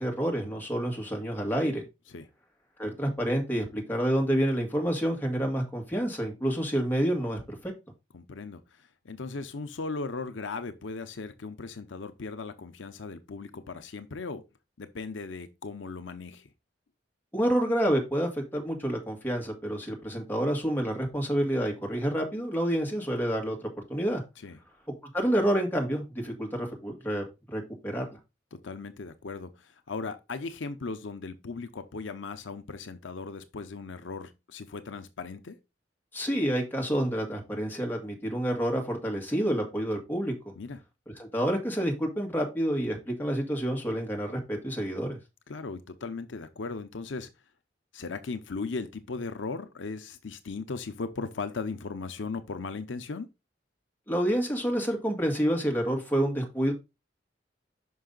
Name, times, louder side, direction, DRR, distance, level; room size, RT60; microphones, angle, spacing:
voice 1, 0.0-1.8 2.8-7.7 17.3-23.6 23.9-24.2 25.1-28.0 36.1-40.3 41.2-45.2 54.1-56.7, equal, 10° left, 1.8 m, -28 dB
voice 2, 8.1-14.4 14.8-16.5 24.4-24.6 28.5-35.6 40.6-40.8 45.5-47.3 47.9-53.3, left 4 dB, 85° left, 0.7 m, -37 dB
5.7 x 5.5 x 3.8 m
head